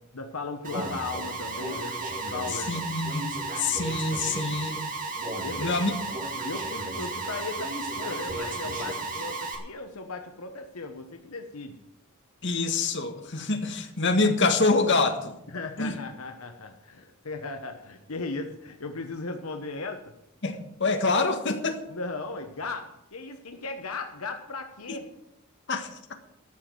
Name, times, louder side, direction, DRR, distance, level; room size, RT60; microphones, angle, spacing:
voice 1, 0.1-2.0 2.3-2.7 5.4-6.0 6.4-11.8 15.5-20.1 21.9-25.0, left 3 dB, 80° left, 5 dB, 1.2 m, -37 dB
Alarm, 0.6-9.6, right 3 dB, 40° right, 2.3 m, -33 dB
voice 2, 2.7-3.3 3.6-4.8 5.6-5.9 12.4-15.4 15.8-15.9 20.4-21.8 24.9-25.0 25.7-25.9, left 3 dB, 55° left, 5 dB, 1.6 m, -26 dB
13.5 x 6.2 x 9.0 m, 0.80 s
head